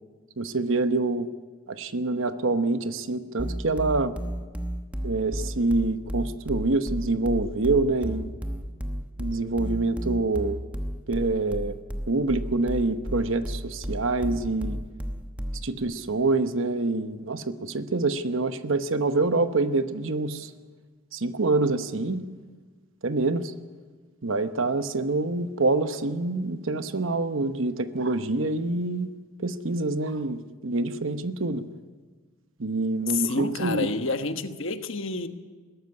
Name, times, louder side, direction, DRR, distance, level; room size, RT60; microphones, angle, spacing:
voice 1, 0.4-1.3 1.7-4.2 5.0-8.3 9.2-10.6 11.1-11.8 12.1-14.8 15.6-20.5 21.1-22.2 23.0-23.5 24.2-29.1 29.4-31.6 32.6-33.9, right 2 dB, 65° right, 10 dB, 1.0 m, -26 dB
sound 1, 3.4-15.8, equal, 5° right, 1.0 m, -32 dB
voice 2, 33.1-35.3, left 3 dB, 65° left, 8 dB, 1.2 m, -29 dB
21.0 x 13.0 x 9.7 m, 1.5 s
head